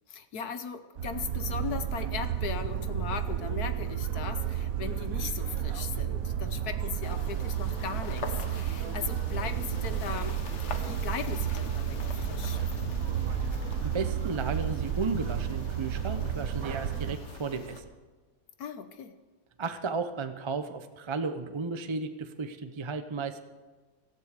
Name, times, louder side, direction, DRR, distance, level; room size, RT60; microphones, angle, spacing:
voice 1, 0.1-10.4 10.7-12.6 18.6-19.1, left 7 dB, 65° left, 10 dB, 1.4 m, -38 dB
sound 1, 1.0-17.2, right 9 dB, 60° right, 1.2 m, -32 dB
sound 2, 7.0-17.8, left 4 dB, 45° left, 1.4 m, -42 dB
voice 2, 13.8-17.9 19.6-23.4, right 4 dB, 40° right, 8 dB, 0.4 m, -34 dB
18.0 x 13.5 x 5.0 m, 1.3 s
omnidirectional pair, 1.8 m